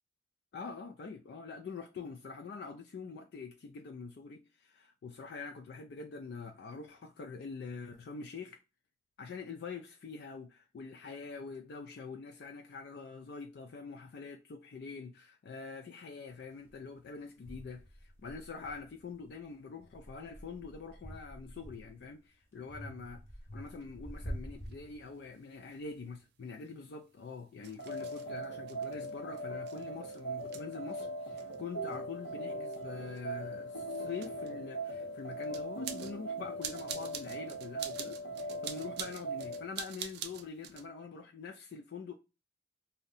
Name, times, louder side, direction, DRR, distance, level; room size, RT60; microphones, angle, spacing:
voice 1, 0.5-8.6 9.2-23.2 23.5-42.1, left 4 dB, 55° left, 0.3 m, -45 dB
sound 1, 16.7-16.8 17.5-19.3 19.8-22.1 22.7-25.5, equal, 15° left, 0.9 m, -47 dB
sound 2, 23.8-23.9 24.6-24.7 25.7-40.9, right 9 dB, 60° right, 0.4 m, -48 dB
sound 3, 27.8-39.7, right 1 dB, 90° left, 0.8 m, -40 dB
2.7 x 2.1 x 3.8 m
head